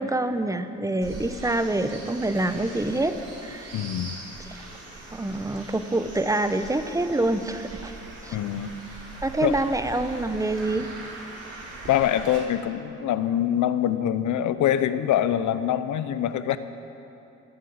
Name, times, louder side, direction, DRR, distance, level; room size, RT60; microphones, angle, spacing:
voice 1, 0.0-3.2 3.4-3.7 4.6-4.7 5.1-7.9 8.2-8.4 9.2-10.9, right 2 dB, 10° right, 10 dB, 0.8 m, -26 dB
sound 1, 1.0-12.4, right 2 dB, 55° right, 4.3 m, -41 dB
voice 2, 3.7-4.2 8.3-8.8 9.4-9.5 11.9-16.6, left 11 dB, 75° left, 12 dB, 0.8 m, -24 dB
18.5 x 7.5 x 8.7 m, 2.9 s
cardioid pair, 90°, 30 cm